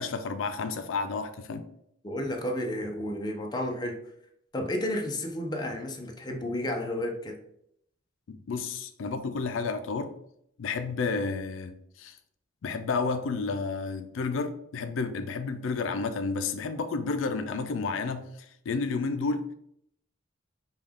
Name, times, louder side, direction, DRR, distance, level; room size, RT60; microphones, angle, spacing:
voice 1, 0.0-1.7 8.3-10.1 10.6-12.2 12.6-18.3 18.7-19.5, left 4 dB, 85° left, 9 dB, 0.4 m, -31 dB
voice 2, 2.0-4.0 4.5-7.4, left 1 dB, 20° left, 2 dB, 0.6 m, -32 dB
5.3 x 2.3 x 3.5 m, 0.73 s
head